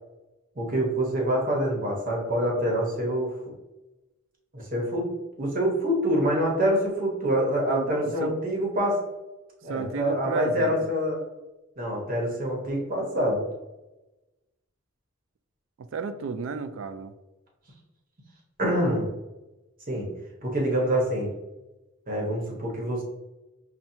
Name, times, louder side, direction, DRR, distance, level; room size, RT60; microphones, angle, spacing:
voice 1, 0.6-3.3 4.5-5.1 5.4-9.0 9.6-11.2 11.8-13.4 18.6-19.1 19.9-20.1 20.4-21.3 22.1-23.0, equal, 40° right, -1 dB, 1.0 m, -26 dB
voice 2, 7.7-8.3 9.7-10.7 15.8-17.1, right 4 dB, 65° right, 11 dB, 0.3 m, -32 dB
5.8 x 2.2 x 2.7 m, 1.0 s
head